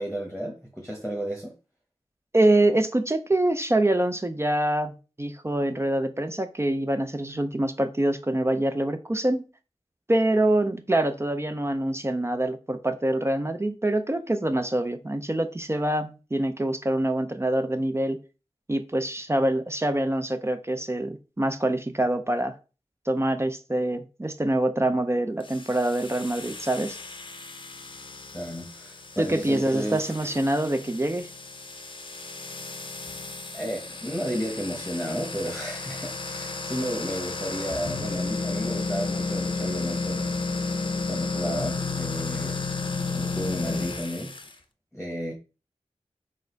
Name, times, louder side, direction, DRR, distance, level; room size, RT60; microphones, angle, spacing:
voice 1, 0.0-1.5 28.3-30.1 33.5-40.4 41.1-42.6 43.1-44.3 44.9-45.3, equal, ahead, 1.1 m, -33 dB
voice 2, 2.3-9.4 10.1-18.2 18.7-22.5 23.1-27.0 29.2-31.3, right 1 dB, 20° right, 0.5 m, -25 dB
sound 1, 25.4-44.5, left 3 dB, 45° left, 0.6 m, -33 dB
4.1 x 2.5 x 3.8 m
cardioid pair, 40°, 12 cm